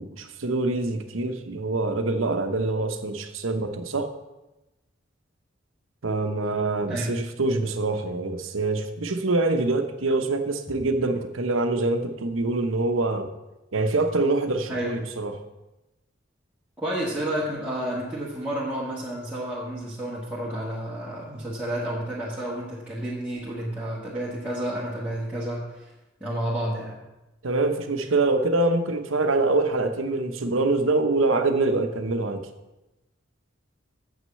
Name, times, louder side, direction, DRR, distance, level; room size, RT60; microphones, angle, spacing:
voice 1, 0.0-4.1 6.0-13.3 13.7-15.3 27.4-32.5, right 2 dB, 90° right, 7 dB, 0.9 m, -25 dB
voice 2, 16.8-25.9 26.2-27.0, right 1 dB, 5° right, -9 dB, 1.6 m, -30 dB
7.3 x 6.3 x 7.7 m, 1.0 s
head